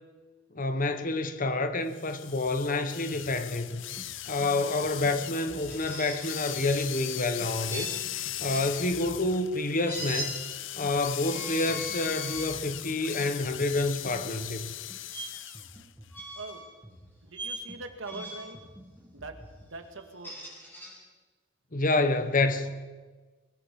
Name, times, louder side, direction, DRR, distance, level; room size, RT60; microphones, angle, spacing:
voice 1, 0.5-3.8 4.3-8.0 8.4-10.4 10.7-14.7 21.7-22.7, left 2 dB, 45° left, 9 dB, 1.4 m, -28 dB
sound 1, 1.9-15.9, left 13 dB, 70° left, 0.7 m, -38 dB
sound 2, 3.8-19.7, equal, 10° right, 2.4 m, -51 dB
sound 3, 5.7-6.9 7.7-8.7 9.9-10.3 11.1-12.5 13.1-13.3 15.1-15.3 16.1-16.7 17.3-17.6 18.0-18.6 20.0-20.9, right 1 dB, 10° left, 7.1 m, -40 dB
voice 2, 16.3-16.7 17.2-18.6 19.1-20.4, right 3 dB, 75° right, 5 dB, 2.3 m, -43 dB
22.5 x 21.5 x 5.5 m, 1.3 s
head